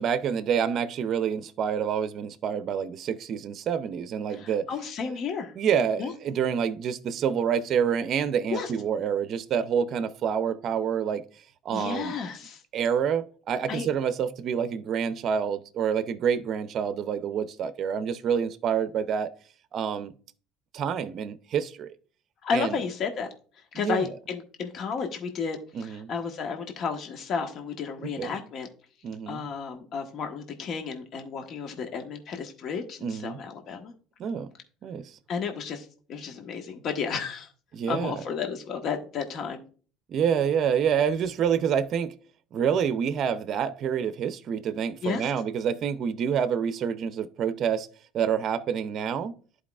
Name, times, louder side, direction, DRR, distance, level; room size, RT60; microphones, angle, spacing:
voice 1, 0.0-4.7 5.1-5.2 5.6-11.2 11.6-12.1 12.7-19.3 19.7-20.1 20.7-22.0 22.5-22.8 23.8-24.0 25.7-26.1 28.0-28.3 29.0-29.4 33.0-33.4 34.2-34.5 34.8-35.2 37.7-38.2 40.1-42.1 42.5-47.9 48.1-49.4, right 7 dB, 45° right, 0.5 m, -27 dB
voice 2, 4.3-5.5 6.0-6.1 8.5-8.7 11.7-12.6 13.7-13.9 22.4-23.3 23.7-28.7 29.3-33.9 35.3-37.5 37.9-39.6 45.0-45.3, left 6 dB, 50° left, 1.2 m, -32 dB
11.0 x 4.7 x 2.4 m
supercardioid pair, 115°, 0 cm